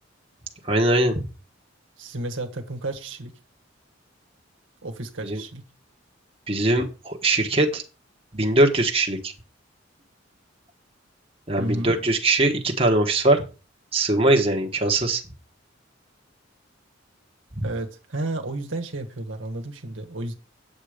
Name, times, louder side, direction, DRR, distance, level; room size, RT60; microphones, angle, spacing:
voice 1, 0.6-1.3 5.2-5.4 6.5-7.8 8.3-9.3 11.5-13.4 13.9-15.2 17.6-17.7, right 2 dB, 30° right, 2 dB, 1.4 m, -21 dB
voice 2, 2.0-3.4 4.8-5.6 11.6-11.9 17.6-20.3, right 2 dB, 75° right, 4 dB, 1.5 m, -32 dB
9.1 x 7.6 x 5.1 m, 0.33 s
head